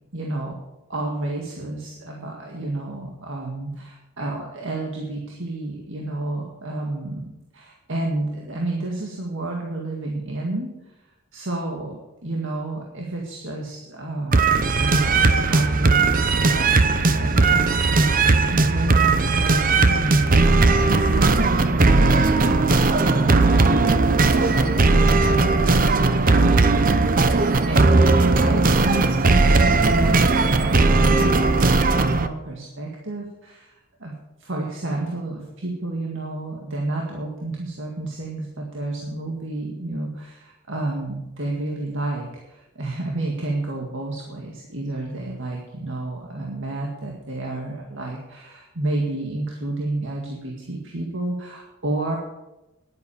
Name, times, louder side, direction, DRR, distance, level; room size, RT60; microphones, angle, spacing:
voice 1, 0.1-0.5 0.9-10.7 11.3-14.5 14.8-27.0 27.7-34.1 34.4-52.2, right 2 dB, 60° right, 0 dB, 1.9 m, -30 dB
sound 1, 14.3-32.3, right 3 dB, 40° right, 0.8 m, -18 dB
11.0 x 9.5 x 7.0 m, 0.97 s
head